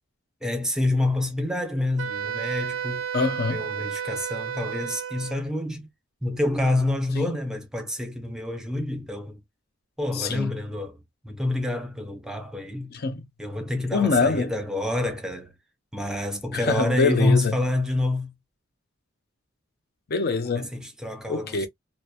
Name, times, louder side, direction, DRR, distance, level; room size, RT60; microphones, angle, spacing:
voice 1, 0.4-3.0 3.5-5.9 6.2-9.4 10.0-11.0 11.2-12.9 13.4-15.5 15.9-18.3 20.6-21.7, left 2 dB, 5° right, 0.7 m, -27 dB
Wind instrument woodwind instrument, 2.0-5.4, right 8 dB, 85° right, 0.5 m, -32 dB
voice 2, 3.1-3.7 7.1-7.3 10.1-10.5 12.9-13.3 13.9-14.5 16.5-17.5 20.1-20.7 21.3-21.7, left 4 dB, 50° left, 0.5 m, -24 dB
2.9 x 2.1 x 2.3 m
head